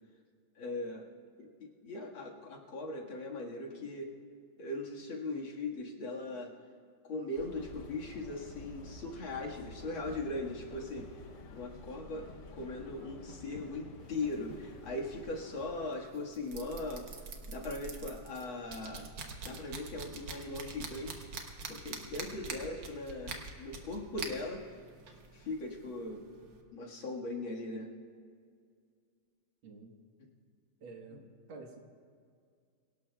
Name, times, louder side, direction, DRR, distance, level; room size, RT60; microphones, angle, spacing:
voice 1, 0.6-1.1 1.4-4.1 4.6-6.5 7.0-11.1 11.5-12.3 12.6-17.1 17.5-19.1 19.4-21.2 21.7-24.6 25.3-26.2 26.7-27.9 31.1-31.2, left 2 dB, 85° left, -1 dB, 2.6 m, -39 dB
sound 1, 7.4-15.9, left 3 dB, 55° left, 0.9 m, -50 dB
sound 2, 14.0-26.6, right 4 dB, 65° right, 1.8 m, -46 dB
voice 2, 29.6-30.0 30.8-31.8, right 3 dB, 90° right, 2 dB, 2.2 m, -49 dB
24.5 x 17.5 x 2.3 m, 2.2 s
omnidirectional pair, 2.1 m